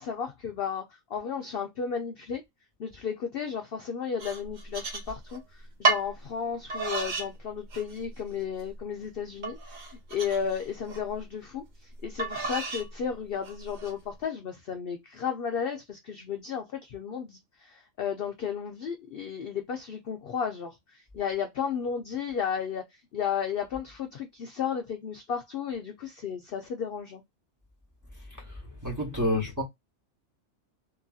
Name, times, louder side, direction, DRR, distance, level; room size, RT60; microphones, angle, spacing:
voice 1, 0.0-2.4 2.8-27.2 29.2-29.3, left 7 dB, 60° left, 0.6 m, -34 dB
sound 1, 4.2-5.4 5.8-6.1 6.7-7.3 7.7-8.2 8.7-8.8 9.4-11.0 12.2-12.9 13.4-13.9, right 3 dB, 40° right, 0.7 m, -31 dB
voice 2, 28.8-29.6, left 1 dB, 15° right, 0.9 m, -28 dB
2.9 x 2.6 x 2.3 m
omnidirectional pair, 1.5 m